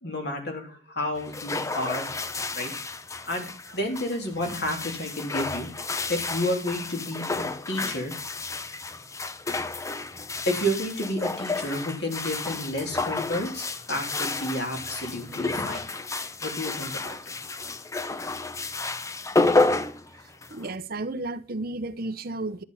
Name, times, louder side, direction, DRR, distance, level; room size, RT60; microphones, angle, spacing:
voice 1, 0.0-2.7 3.3-8.1 10.5-15.9 16.4-17.2, left 1 dB, 55° left, 3.4 m, -31 dB
sound 1, 1.2-20.8, left 3 dB, 15° left, 0.5 m, -31 dB
voice 2, 20.5-22.6, right 2 dB, 45° right, 0.7 m, -32 dB
11.0 x 10.0 x 5.6 m
head